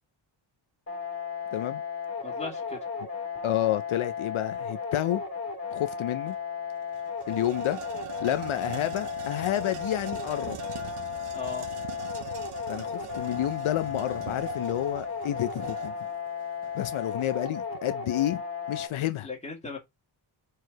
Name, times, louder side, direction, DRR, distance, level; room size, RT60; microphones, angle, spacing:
sound 1, 0.9-18.9, left 6 dB, 30° left, 2.1 m, -35 dB
voice 1, 1.5-1.8 3.4-5.2 5.7-6.3 7.3-7.8 8.2-10.6 12.7-15.9 16.7-18.4 18.7-19.3, left 13 dB, 75° left, 0.6 m, -29 dB
voice 2, 2.2-2.8 11.3-11.7 19.2-19.8, left 5 dB, 15° left, 2.2 m, -37 dB
sound 2, 6.3-6.4 6.7-17.4, right 8 dB, 85° right, 1.2 m, -43 dB
4.7 x 4.6 x 4.6 m
wide cardioid pair, 180°, 49 cm